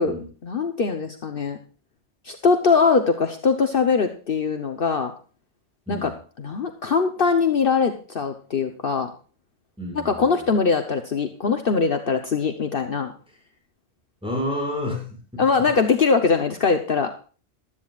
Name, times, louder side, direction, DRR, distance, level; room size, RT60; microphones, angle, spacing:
voice 1, 0.4-1.6 2.2-5.1 5.9-6.1 6.4-9.1 9.9-13.1 15.4-17.1, left 5 dB, 55° left, 5 dB, 1.2 m, -22 dB
voice 2, 9.8-10.3 14.2-15.4, left 1 dB, 5° right, 0 dB, 6.1 m, -30 dB
16.0 x 12.5 x 2.4 m, 0.38 s
omnidirectional pair, 1.1 m